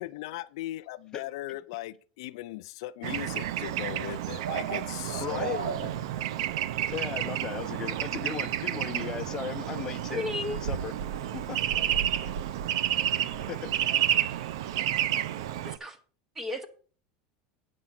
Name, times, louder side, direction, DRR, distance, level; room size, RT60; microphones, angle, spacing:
voice 1, 0.0-5.9, left 17 dB, 75° left, 0.4 m, -38 dB
Bird / Traffic noise roadway noise, 3.0-15.8, right 11 dB, 85° right, 0.5 m, -30 dB
voice 2, 5.2-5.6 6.9-10.2 10.6-10.9 11.3-11.6 13.5-13.8, left 9 dB, 25° left, 0.7 m, -36 dB
voice 3, 10.1-10.6 15.6-16.0 16.3-16.7, left 2 dB, 15° right, 1.1 m, -34 dB
9.0 x 6.1 x 5.9 m
supercardioid pair, 155°, 3 cm